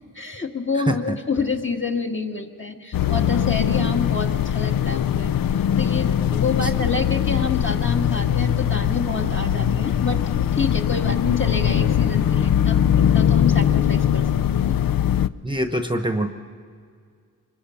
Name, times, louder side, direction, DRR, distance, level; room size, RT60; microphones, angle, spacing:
voice 1, 0.1-5.3 5.8-10.2 10.5-14.3 14.7-14.8, left 4 dB, 35° left, 2 dB, 1.8 m, -28 dB
voice 2, 0.9-1.2 6.6-6.7 15.4-16.3, right 1 dB, 15° right, 7 dB, 1.0 m, -24 dB
sound 1, 2.9-15.3, left 9 dB, 80° left, 0.5 m, -21 dB
25.0 x 21.5 x 5.8 m, 2.2 s
wide cardioid pair, 80°, 34 cm